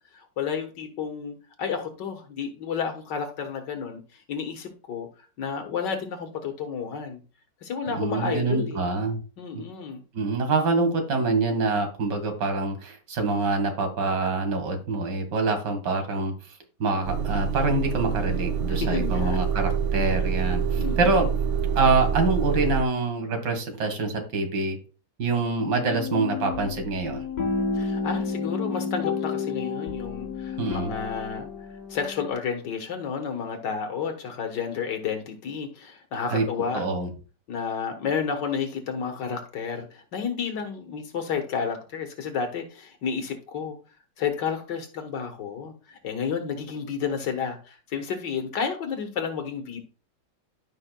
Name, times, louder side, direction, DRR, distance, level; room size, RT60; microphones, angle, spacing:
voice 1, 0.1-5.1 5.4-7.2 7.6-8.9 9.4-10.0 18.8-19.4 20.7-21.3 27.7-31.5 31.9-36.8 37.5-43.8 44.2-49.8, left 6 dB, 90° left, 2.0 m, -31 dB
voice 2, 7.9-9.2 9.5-9.6 10.1-16.3 16.8-21.3 21.8-24.8 25.2-27.2 30.6-30.9 36.3-36.4 36.7-37.1, right 3 dB, 90° right, 2.3 m, -25 dB
Motor vehicle (road) / Engine starting / Idling, 17.0-22.8, right 6 dB, 65° right, 0.7 m, -26 dB
sound 1, 25.6-32.3, left 5 dB, 60° left, 1.3 m, -31 dB
13.0 x 5.6 x 2.3 m
omnidirectional pair, 1.8 m